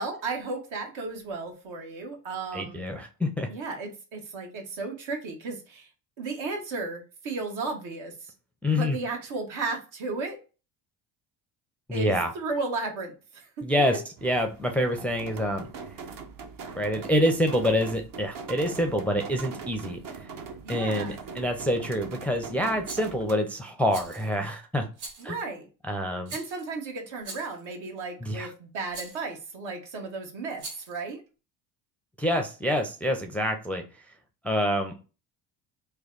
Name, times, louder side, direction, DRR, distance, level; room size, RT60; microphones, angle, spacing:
voice 1, 0.0-2.8 3.5-5.9 6.2-8.3 8.7-10.4 11.9-13.6 20.6-21.1 25.2-25.7 26.3-31.2, right 3 dB, 65° right, 2 dB, 1.4 m, -34 dB
voice 2, 2.5-3.5 8.6-9.0 11.9-12.3 13.6-15.7 16.8-20.0 20.7-24.9 25.2-25.3 25.9-26.3 28.2-28.5 32.2-33.8 34.4-35.0, equal, 5° left, 4 dB, 0.5 m, -26 dB
sound 1, 14.2-23.4, right 5 dB, 45° right, 0.8 m, -41 dB
Rattle, 22.8-23.1 23.9-24.3 25.0-25.3 26.3-26.7 27.2-27.6 28.9-29.2 30.5-31.0, right 3 dB, 85° right, 1.1 m, -41 dB
3.3 x 2.3 x 3.7 m, 0.33 s
supercardioid pair, 80°, 49 cm